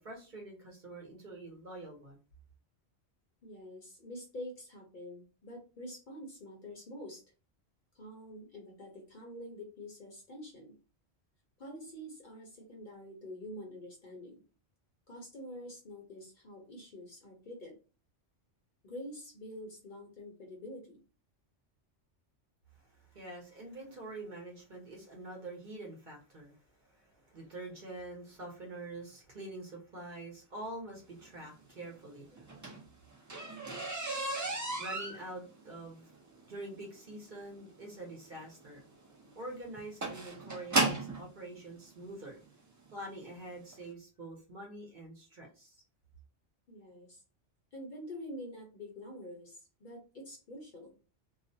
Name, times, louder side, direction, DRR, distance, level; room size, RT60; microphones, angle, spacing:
voice 1, 0.0-2.2 22.8-32.6 34.8-36.1 36.5-38.8 39.3-42.4 42.9-45.8, right 2 dB, 50° right, 0.8 m, -46 dB
voice 2, 3.4-7.2 7.9-10.7 11.6-14.4 15.1-17.8 18.8-21.0 37.8-37.9 46.7-47.2 47.7-51.0, left 1 dB, 50° left, 0.7 m, -46 dB
sound 1, 32.4-41.2 42.1-42.2 42.8-43.0 43.3-43.4 43.7-43.8, right 2 dB, 30° right, 0.3 m, -35 dB
2.4 x 2.1 x 2.6 m
omnidirectional pair, 1.1 m